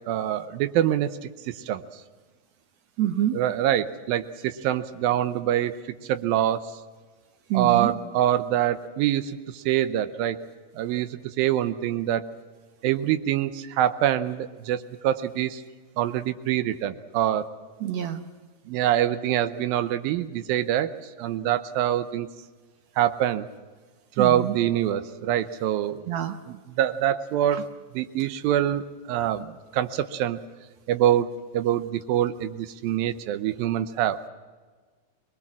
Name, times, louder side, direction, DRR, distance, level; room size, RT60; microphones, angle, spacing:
voice 1, 0.1-1.1 1.6-1.8 3.3-5.7 6.1-6.8 7.5-10.4 10.8-12.3 12.8-15.6 16.0-17.5 18.7-22.3 23.0-23.5 24.2-26.0 26.5-30.4 30.9-34.2, right 11 dB, 90° right, 11 dB, 2.6 m, -25 dB
voice 2, 3.0-3.4 7.5-7.9 17.8-18.2 24.2-24.5 26.1-26.4 27.5-27.6, right 11 dB, 70° right, 9 dB, 1.7 m, -26 dB
23.5 x 21.5 x 7.3 m, 1.4 s
omnidirectional pair, 4.1 m